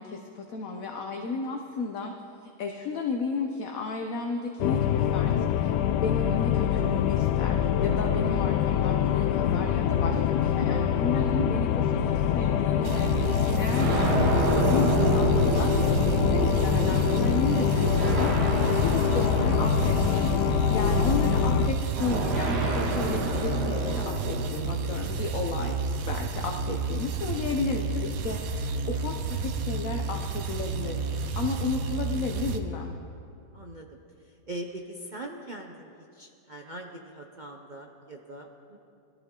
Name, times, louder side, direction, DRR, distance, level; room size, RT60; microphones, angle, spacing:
voice 1, 0.0-2.1 2.6-33.0, left 4 dB, 60° left, 3 dB, 1.2 m, -33 dB
sound 1, 4.6-21.7, left 9 dB, 90° left, 1.2 m, -25 dB
sound 2, 8.9-11.6 12.5-12.6 13.7-21.0 21.9-24.5, right 2 dB, 80° right, 2.1 m, -30 dB
sound 3, 12.8-32.6, right 4 dB, 60° right, 1.2 m, -31 dB
voice 2, 31.4-31.7 33.5-34.0 34.5-38.8, right 1 dB, 40° right, 1 dB, 0.7 m, -42 dB
21.0 x 14.0 x 3.8 m, 2.5 s
omnidirectional pair, 1.8 m